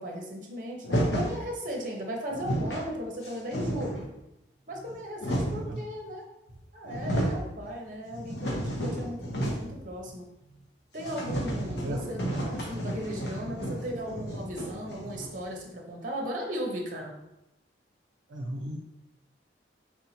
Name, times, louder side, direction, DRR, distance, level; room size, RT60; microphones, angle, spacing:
voice 1, 0.0-4.0 4.7-6.2 6.7-10.2 10.9-17.1, equal, 45° right, 0 dB, 0.8 m, -36 dB
sound 1, 0.8-1.4 2.0-2.1 2.3-2.9 3.2-4.1 4.8-5.7 6.5-6.6 6.8-7.5 7.9-9.8 10.1-10.2 10.5-10.6 11.0-15.5, equal, 60° left, 0.8 m, -32 dB
voice 2, 5.5-5.8 11.7-12.1 18.3-18.8, right 1 dB, 75° right, 0 dB, 0.4 m, -35 dB
4.6 x 2.7 x 2.8 m, 0.88 s
head